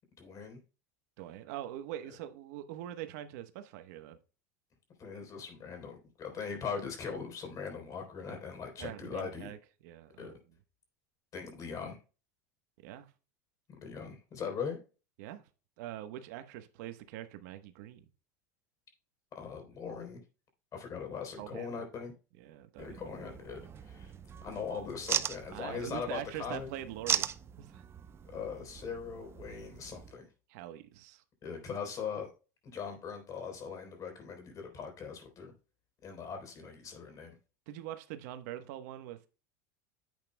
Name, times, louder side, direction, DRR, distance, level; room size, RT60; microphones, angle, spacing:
voice 1, 0.2-0.6 5.0-9.5 10.2-10.3 11.3-12.0 13.8-14.8 19.3-20.2 20.7-22.1 22.8-24.1 24.4-26.7 28.2-30.3 31.4-32.3 32.7-35.5 36.0-37.3, left 6 dB, 35° left, 3.7 m, -40 dB
voice 2, 1.2-4.2 8.8-9.6 9.8-10.4 12.8-13.1 15.2-15.4 15.8-18.0 21.4-21.7 22.4-23.3 25.5-27.3 27.6-27.8 30.5-31.2 37.7-39.3, right 12 dB, 70° right, 1.1 m, -43 dB
sound 1, 22.8-30.1, right 8 dB, 25° right, 0.6 m, -39 dB
10.5 x 8.1 x 2.2 m
supercardioid pair, 115°, 9 cm